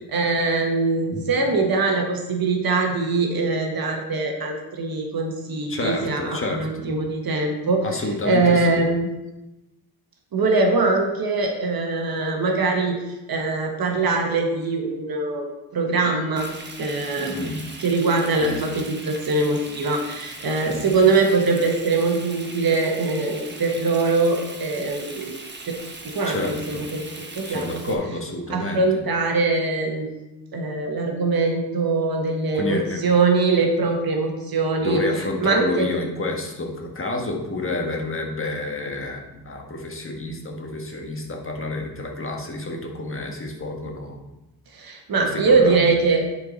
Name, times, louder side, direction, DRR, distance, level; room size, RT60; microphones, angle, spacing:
voice 1, 0.1-7.8 8.3-9.1 10.3-13.0 13.3-16.5 16.8-17.5 17.8-25.4 25.7-25.8 26.0-27.1 27.3-27.7 28.5-30.1 30.5-35.0 35.4-35.9 44.7-46.2, right 3 dB, 65° right, 3 dB, 1.3 m, -22 dB
voice 2, 5.7-6.9 7.8-8.8 17.3-17.6 18.4-18.6 20.7-20.9 26.2-26.9 27.5-29.0 32.5-33.0 34.8-44.3 45.2-45.9, left 2 dB, 35° left, 1 dB, 1.5 m, -29 dB
Frying (food), 16.4-27.9, right 3 dB, 30° right, 1.1 m, -39 dB
10.0 x 4.6 x 4.1 m, 0.99 s
cardioid pair, 90°, 38 cm